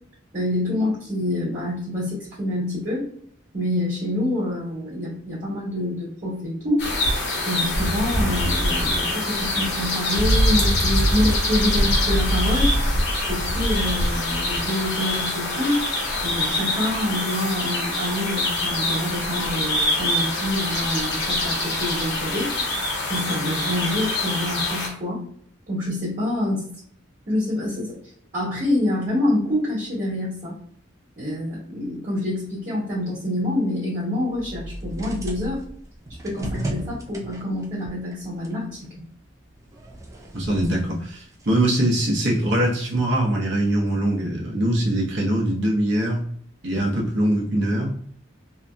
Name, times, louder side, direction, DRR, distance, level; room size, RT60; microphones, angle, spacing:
voice 1, 0.3-3.1 3.5-6.9 7.4-12.7 13.3-15.8 16.2-22.5 23.1-25.2 25.7-26.7 27.3-28.0 28.3-30.5 31.2-35.6 36.2-38.9, left 1 dB, 40° right, -6 dB, 1.3 m, -26 dB
sound 1, 6.8-24.9, left 1 dB, 55° left, 1.0 m, -24 dB
sound 2, 34.3-39.2 39.6-41.6, right 1 dB, 15° right, 0.3 m, -35 dB
voice 2, 40.3-46.2 46.6-47.9, right 1 dB, 65° right, -3 dB, 0.8 m, -22 dB
2.8 x 2.6 x 2.2 m, 0.62 s
head